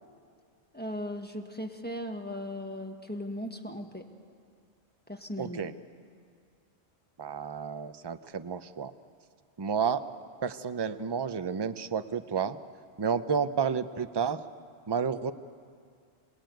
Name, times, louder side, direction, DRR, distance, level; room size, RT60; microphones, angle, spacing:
voice 1, 0.7-4.1 5.1-5.6, left 1 dB, 10° left, 2 dB, 1.6 m, -37 dB
voice 2, 5.4-5.7 7.2-8.9 9.6-10.0 10.4-12.6 13.0-14.4 14.9-15.3, right 6 dB, 25° right, 11 dB, 0.6 m, -31 dB
27.0 x 19.0 x 9.2 m, 2.2 s
omnidirectional pair, 1.2 m